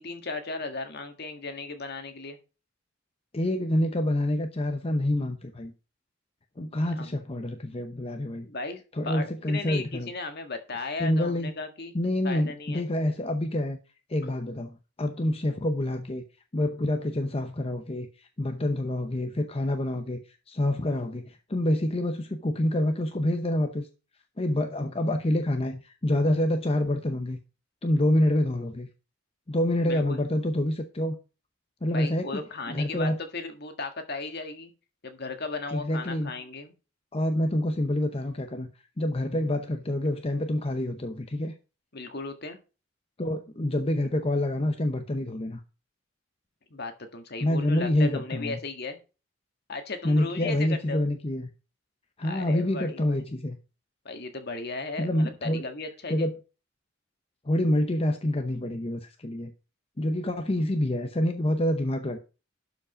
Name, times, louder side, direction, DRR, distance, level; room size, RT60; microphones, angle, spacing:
voice 1, 0.0-2.4 7.0-7.2 8.4-11.9 12.2-12.8 29.8-30.2 31.9-34.7 35.0-36.7 41.9-42.6 46.7-49.0 49.7-51.0 52.2-53.2 54.0-56.3, left 3 dB, 55° left, 1.7 m, -36 dB
voice 2, 3.3-5.7 6.6-8.5 9.0-10.1 11.0-11.5 11.9-13.8 14.1-16.2 16.5-23.9 24.4-27.4 27.8-28.9 29.5-31.2 31.8-32.4 32.7-33.2 35.7-36.3 37.1-38.7 39.0-41.5 43.2-45.6 47.4-48.6 50.0-51.5 52.2-53.6 55.0-55.6 56.1-56.3 57.4-59.5 60.0-62.2, left 1 dB, 30° left, 0.8 m, -27 dB
12.0 x 5.1 x 5.0 m
head